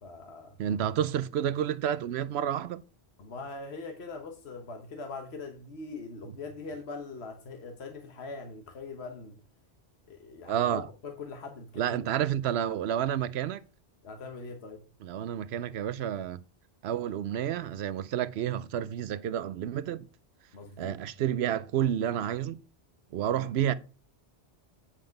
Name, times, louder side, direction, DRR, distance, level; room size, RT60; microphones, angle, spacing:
voice 1, 0.0-0.6 3.2-9.4 10.1-12.1 14.0-14.8 20.5-21.0, left 3 dB, 75° left, 1.4 m, -42 dB
voice 2, 0.6-2.8 10.5-10.9 11.8-13.6 15.0-16.4 16.8-20.1 20.8-22.6 23.1-23.7, right 10 dB, 75° right, 0.8 m, -30 dB
8.8 x 5.8 x 5.1 m
omnidirectional pair, 1.1 m